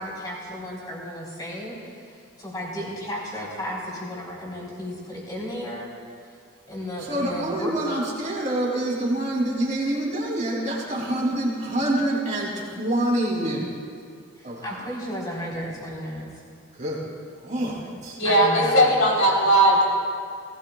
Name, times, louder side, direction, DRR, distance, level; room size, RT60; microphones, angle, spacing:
voice 1, 0.0-5.9 6.7-7.8 14.4-16.3 18.2-18.9, equal, 20° left, -5 dB, 4.2 m, -34 dB
voice 2, 7.0-13.7 14.4-14.9 16.7-17.0 17.4-18.2, right 1 dB, 35° right, -3 dB, 2.9 m, -26 dB
voice 3, 18.2-19.8, right 1 dB, 80° left, -3 dB, 3.7 m, -18 dB
20.0 x 17.5 x 2.4 m, 2.3 s
head